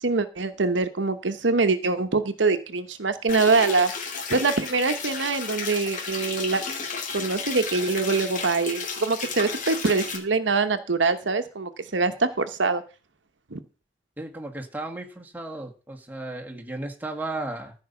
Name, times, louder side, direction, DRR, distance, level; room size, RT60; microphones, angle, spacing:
voice 1, 0.0-3.9 4.3-6.6 7.1-12.8 13.5-13.6, right 4 dB, 70° right, 10 dB, 1.0 m, -24 dB
sound 1, 3.3-10.2, left 5 dB, 45° left, 2.8 m, -33 dB
voice 2, 14.2-17.7, right 2 dB, 10° right, 2 dB, 1.8 m, -34 dB
14.5 x 5.4 x 6.9 m, 0.34 s
head